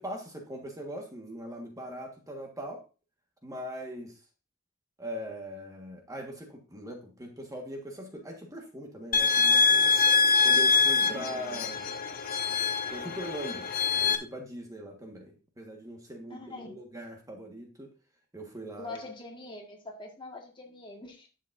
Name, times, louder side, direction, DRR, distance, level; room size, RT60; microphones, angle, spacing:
voice 1, 0.0-2.8 3.4-4.1 5.0-9.9 10.4-11.9 12.9-13.7 13.9-17.9 18.3-19.0, equal, 15° right, 2 dB, 1.6 m, -41 dB
sound 1, 9.1-14.2, left 5 dB, 45° left, 1.1 m, -24 dB
voice 2, 11.0-11.6 16.3-16.7 18.8-21.4, left 2 dB, 25° left, 1 dB, 1.9 m, -44 dB
11.0 x 7.3 x 2.7 m, 0.32 s
head